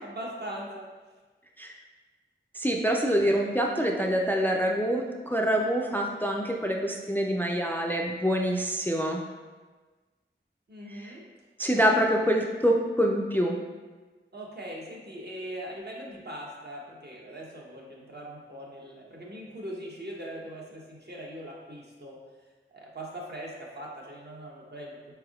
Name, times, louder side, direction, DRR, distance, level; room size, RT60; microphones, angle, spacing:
voice 1, 0.0-0.8 10.7-11.2 14.3-22.2 22.7-25.0, right 1 dB, 55° right, -3 dB, 0.8 m, -40 dB
voice 2, 2.5-9.2 11.0-11.1 11.6-13.6, equal, 10° left, 0 dB, 0.3 m, -26 dB
4.3 x 3.4 x 2.3 m, 1.3 s
wide cardioid pair, 40°, 21 cm